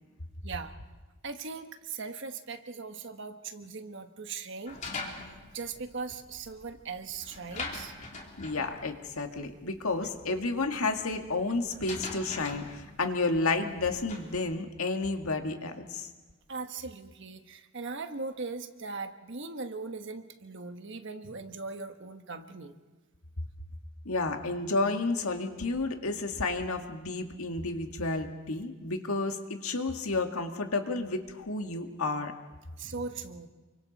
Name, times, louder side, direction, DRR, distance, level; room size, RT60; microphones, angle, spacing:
voice 1, 0.4-0.7 1.2-4.8 5.5-7.9 16.5-22.7 32.8-33.5, right 4 dB, 55° right, 7 dB, 1.4 m, -39 dB
sound 1, 4.7-14.4, left 3 dB, 35° left, 2.9 m, -43 dB
voice 2, 8.4-16.1 24.1-32.3, left 3 dB, 80° left, 5 dB, 1.9 m, -31 dB
29.0 x 24.5 x 4.2 m, 1.2 s
head